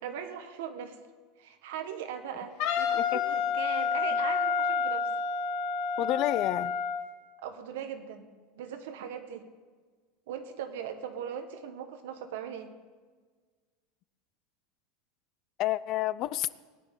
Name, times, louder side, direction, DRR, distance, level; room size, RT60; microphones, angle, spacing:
voice 1, 0.0-1.0 1.4-5.1 7.4-8.3 8.6-9.5 10.3-12.7, right 8 dB, 75° right, 7 dB, 1.3 m, -39 dB
Wind instrument woodwind instrument, 2.6-7.0, left 6 dB, 50° left, 1.3 m, -29 dB
voice 2, 6.0-6.7 15.6-16.5, left 14 dB, 35° left, 18 dB, 0.3 m, -29 dB
19.5 x 10.0 x 3.8 m, 1.4 s
supercardioid pair, 180°, 0 cm